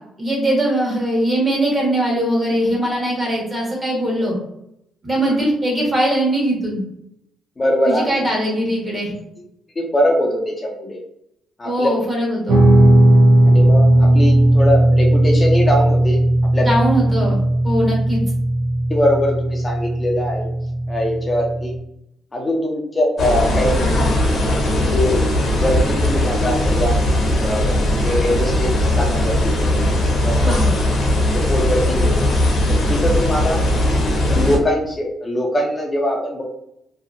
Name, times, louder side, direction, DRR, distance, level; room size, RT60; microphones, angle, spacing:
voice 1, 0.2-4.3 5.0-6.8 7.8-9.1 11.6-12.6 16.6-17.4 17.6-18.2 30.4-30.7, right 1 dB, 30° right, -3 dB, 1.2 m, -20 dB
voice 2, 7.6-8.1 9.8-11.0 11.6-11.9 13.5-16.2 16.5-16.7 18.9-20.5 20.9-21.7 22.3-23.8 24.8-25.2 25.5-27.0 27.4-29.9 30.2-30.6 31.3-32.3 32.7-33.6 34.3-36.5, left 1 dB, 25° left, 0 dB, 0.5 m, -22 dB
Guitar, 12.5-21.8, right 1 dB, 80° right, 0.7 m, -16 dB
sound 1, 23.2-34.6, left 1 dB, 55° left, 0.7 m, -18 dB
2.7 x 2.3 x 2.5 m, 0.79 s
cardioid pair, 90°, 0 cm